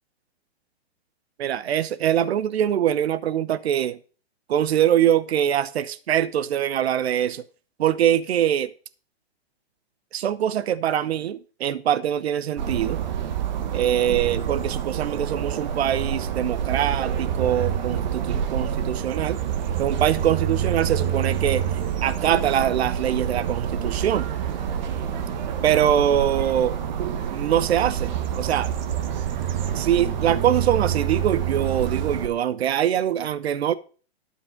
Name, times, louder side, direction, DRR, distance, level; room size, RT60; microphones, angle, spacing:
voice 1, 1.4-4.0 4.5-7.4 7.8-8.7 10.1-13.0 13.7-19.4 19.8-24.3 25.6-26.8 27.3-28.7 29.7-33.7, right 10 dB, 75° right, 0.8 m, -23 dB
sound 1, 12.6-32.3, right 9 dB, 45° right, 1.4 m, -27 dB
12.0 x 5.6 x 6.5 m
hypercardioid pair, 160°, 32 cm